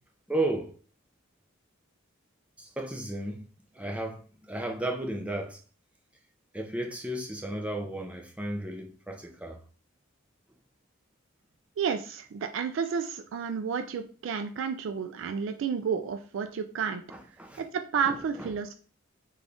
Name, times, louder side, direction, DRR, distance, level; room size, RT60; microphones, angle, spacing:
voice 1, 0.3-0.8 2.6-3.4 3.7-5.6 6.5-9.6 17.1-17.6 18.0-18.5, right 1 dB, 5° right, 0.5 m, -34 dB
voice 2, 11.8-17.0 17.6-18.7, right 6 dB, 65° right, 0.3 m, -31 dB
3.4 x 2.3 x 3.8 m
head